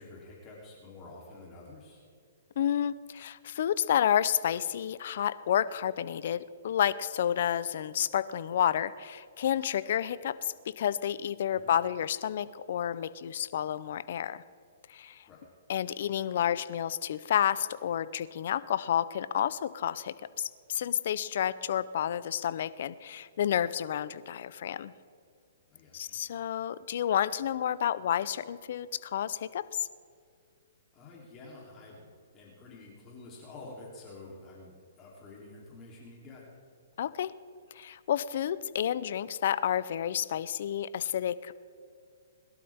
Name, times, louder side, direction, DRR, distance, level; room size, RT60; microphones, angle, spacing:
voice 1, 0.0-2.0 11.5-11.7 15.3-15.4 25.7-26.2 30.9-32.1 32.3-36.4, left 2 dB, 25° left, -4 dB, 3.3 m, -49 dB
voice 2, 2.6-14.4 14.9-15.2 15.7-24.9 25.9-29.9 37.0-37.3 37.7-41.6, left 10 dB, 60° left, 16 dB, 0.6 m, -30 dB
21.5 x 12.0 x 3.6 m, 2.3 s
hypercardioid pair, 140°, 0 cm